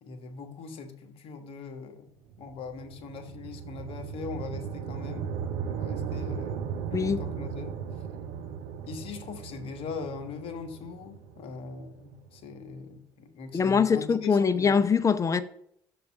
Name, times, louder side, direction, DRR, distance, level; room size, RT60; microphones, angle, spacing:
voice 1, 0.0-7.8 8.9-14.9, left 5 dB, 65° left, 1.3 m, -41 dB
sound 1, 2.3-12.5, right 7 dB, 80° right, 0.7 m, -37 dB
voice 2, 6.9-7.2 13.5-15.4, left 6 dB, 30° left, 0.7 m, -23 dB
7.0 x 3.9 x 6.3 m
supercardioid pair, 65°, 10 cm